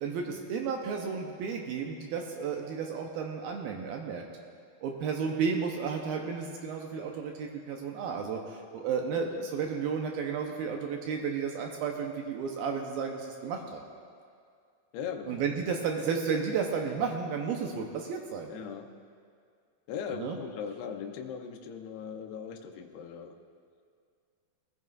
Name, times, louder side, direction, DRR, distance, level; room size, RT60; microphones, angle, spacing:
voice 1, 0.0-4.2 4.8-13.8 15.3-18.5 20.1-20.4, right 6 dB, 75° right, 2 dB, 2.4 m, -33 dB
voice 2, 14.9-15.4 18.5-18.9 19.9-23.3, left 7 dB, 80° left, 3 dB, 2.7 m, -39 dB
20.5 x 15.0 x 2.5 m, 2.2 s
omnidirectional pair, 4.9 m